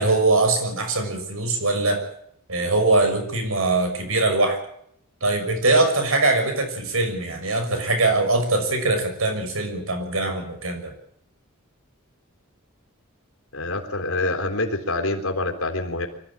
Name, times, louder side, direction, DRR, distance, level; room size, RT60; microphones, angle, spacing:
voice 1, 0.0-2.0 2.5-4.6 5.2-10.9, right 2 dB, 80° right, 5 dB, 6.4 m, -22 dB
voice 2, 13.5-16.1, left 2 dB, 90° left, 3 dB, 3.6 m, -26 dB
24.5 x 14.5 x 8.8 m, 0.70 s
head